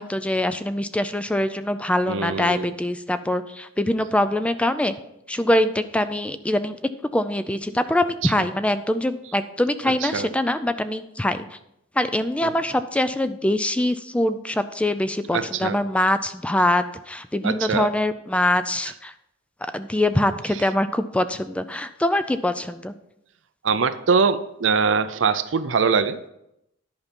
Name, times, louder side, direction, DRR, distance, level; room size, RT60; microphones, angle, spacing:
voice 1, 0.0-4.9 5.3-6.8 7.1-11.5 12.0-19.1 19.6-22.9, left 1 dB, 5° left, 11 dB, 0.4 m, -23 dB
voice 2, 2.1-2.7 8.2-8.3 10.0-10.3 12.4-12.5 15.3-15.8 17.4-17.9 23.6-26.3, right 5 dB, 70° right, 12 dB, 0.6 m, -23 dB
10.5 x 5.7 x 5.2 m, 0.82 s
head